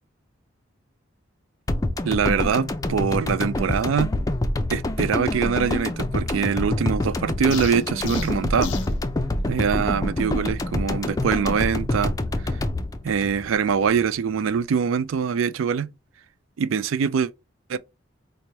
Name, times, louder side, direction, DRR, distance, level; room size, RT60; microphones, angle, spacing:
sound 1, 1.7-14.0 14.3-14.4, left 1 dB, 20° left, 0.3 m, -26 dB
voice 1, 2.0-4.1 4.7-8.7 9.5-12.1 13.0-15.9 16.6-17.3 17.7-17.8, right 6 dB, 90° right, 0.4 m, -23 dB
sound 2, 7.5-9.0, left 5 dB, 70° left, 0.5 m, -31 dB
4.6 x 2.1 x 2.7 m
head